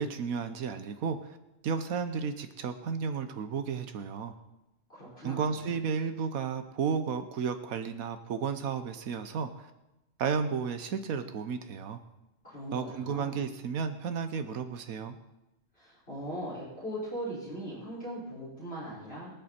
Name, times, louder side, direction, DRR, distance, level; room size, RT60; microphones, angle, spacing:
voice 1, 0.0-1.4 1.6-4.3 5.2-9.7 10.2-12.0 12.7-15.1, right 6 dB, 85° right, 9 dB, 1.3 m, -33 dB
voice 2, 4.9-5.7 12.4-13.4 15.7-19.3, right 1 dB, 45° left, -9 dB, 5.8 m, -39 dB
23.0 x 8.0 x 4.4 m, 0.97 s
omnidirectional pair, 1.4 m